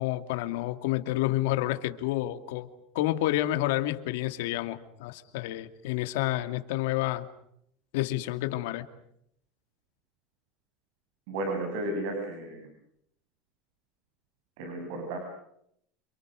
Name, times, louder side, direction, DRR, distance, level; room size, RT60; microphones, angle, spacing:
voice 1, 0.0-2.7 2.9-7.3 7.9-8.8, left 15 dB, 80° left, 9 dB, 2.5 m, -29 dB
voice 2, 11.3-12.7 14.6-15.2, right 1 dB, 70° right, 4 dB, 7.8 m, -33 dB
29.0 x 28.0 x 6.5 m, 0.72 s
cardioid pair, 160°, 0 cm